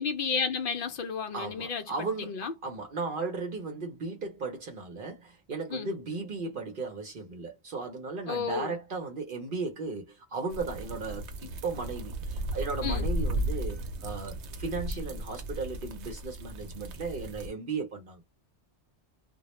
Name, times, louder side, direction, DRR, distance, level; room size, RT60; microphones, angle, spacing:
voice 1, 0.0-2.5 5.7-5.9 8.3-8.7 12.8-13.1, left 6 dB, 60° left, 0.6 m, -32 dB
voice 2, 1.3-18.2, right 4 dB, 55° right, 0.8 m, -36 dB
sound 1, 10.5-17.5, right 1 dB, 80° right, 0.9 m, -35 dB
2.2 x 2.0 x 2.9 m
omnidirectional pair, 1.1 m